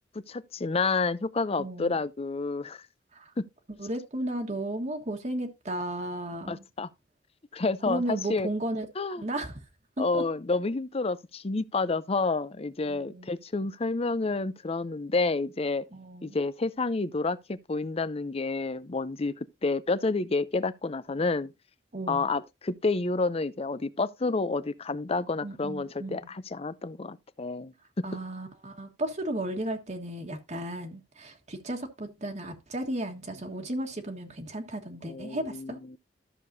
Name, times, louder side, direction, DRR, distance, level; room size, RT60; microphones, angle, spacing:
voice 1, 0.3-2.8 3.4-3.5 6.5-6.9 7.5-8.5 9.0-9.2 10.0-15.8 16.2-21.5 22.1-28.1 35.0-36.0, left 3 dB, 35° left, 0.6 m, -29 dB
voice 2, 1.5-2.0 3.1-3.3 3.8-6.7 7.9-8.9 9.2-9.6 10.0-10.2 12.8-13.4 15.9-16.4 21.9-22.3 25.4-26.3 28.0-35.8, right 1 dB, 40° right, 1.5 m, -34 dB
13.0 x 6.7 x 2.7 m
head